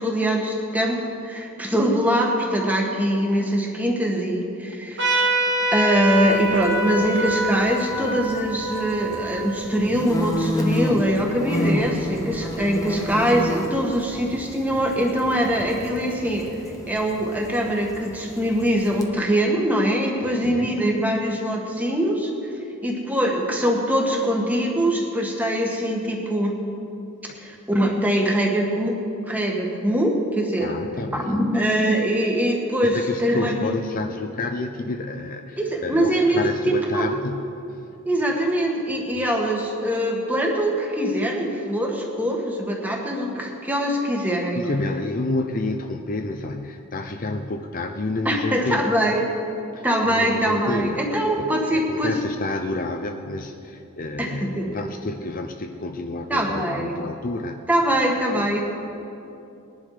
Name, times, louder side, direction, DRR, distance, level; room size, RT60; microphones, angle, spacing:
voice 1, 0.0-5.2 5.7-22.3 22.8-26.6 27.3-29.0 29.3-30.7 31.1-33.7 35.6-37.1 38.0-44.6 48.2-49.3 49.8-52.2 54.2-54.7 56.3-57.0 57.7-58.6, equal, 5° right, 0 dB, 1.7 m, -23 dB
Trumpet, 5.0-10.1, right 1 dB, 55° right, 2.1 m, -25 dB
sound 1, 6.1-19.0, left 1 dB, 15° left, 1.0 m, -31 dB
voice 2, 20.2-20.8 30.6-31.4 32.8-37.5 37.9-38.0 38.9-39.2 44.3-48.9 49.7-51.1 51.4-57.6 58.4-58.6, left 2 dB, 40° left, 5 dB, 0.6 m, -30 dB
20.5 x 11.0 x 5.0 m, 2.7 s
head